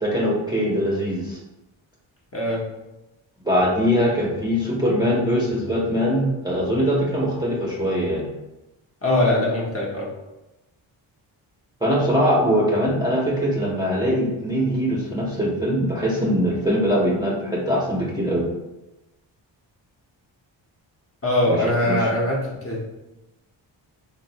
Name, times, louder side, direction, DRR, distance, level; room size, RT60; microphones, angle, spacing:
voice 1, 0.0-1.4 3.4-8.3 11.8-18.4 21.5-21.6 21.8-22.0, equal, 10° right, -6 dB, 0.7 m, -22 dB
voice 2, 2.3-2.6 9.0-10.1 21.2-22.9, left 1 dB, 30° left, -3 dB, 0.9 m, -22 dB
2.9 x 2.1 x 2.8 m, 0.97 s
supercardioid pair, 50°, 49 cm